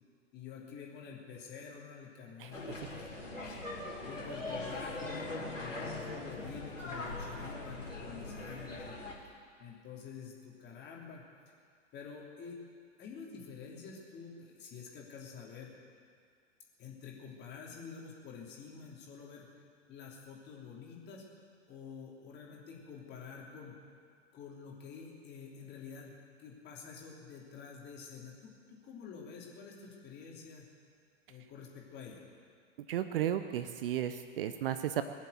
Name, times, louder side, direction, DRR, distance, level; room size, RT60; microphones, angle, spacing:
voice 1, 0.3-3.1 3.4-3.6 4.0-9.0 9.6-11.2 11.9-12.6 13.0-15.7 16.8-19.5 19.9-21.2 21.7-23.8 24.3-30.6 31.3-32.2, left 6 dB, 25° left, -2 dB, 3.2 m, -48 dB
sound 1, 2.5-9.1, left 2 dB, 85° left, 3.3 m, -41 dB
voice 2, 32.9-35.0, right 11 dB, 50° right, 10 dB, 0.8 m, -33 dB
21.5 x 7.5 x 8.1 m, 2.1 s
figure-of-eight pair, 100°, 37 cm